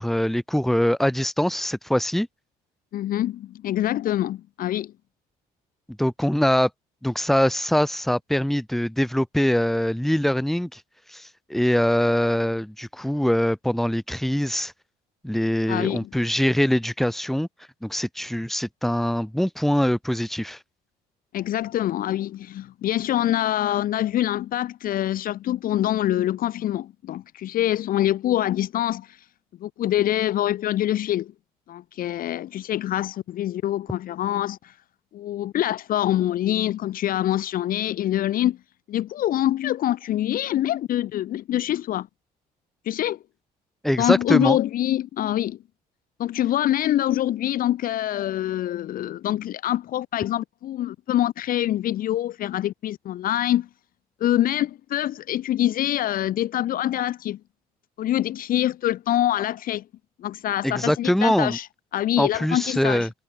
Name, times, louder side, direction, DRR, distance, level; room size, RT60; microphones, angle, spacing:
voice 1, 0.0-2.3 6.0-6.7 7.0-10.8 11.1-14.7 15.2-17.5 17.8-20.6 43.8-44.6 60.6-61.6 62.2-63.1, equal, ahead, 1.3 m, -23 dB
voice 2, 2.9-4.9 15.7-16.1 21.3-29.1 29.6-31.3 31.7-34.7 35.1-38.6 38.9-42.1 42.9-43.2 44.0-45.6 46.2-53.7 54.2-57.4 58.0-59.8 60.2-61.7 61.9-63.1, left 12 dB, 55° left, 0.7 m, -25 dB
cardioid pair, 110°, 17 cm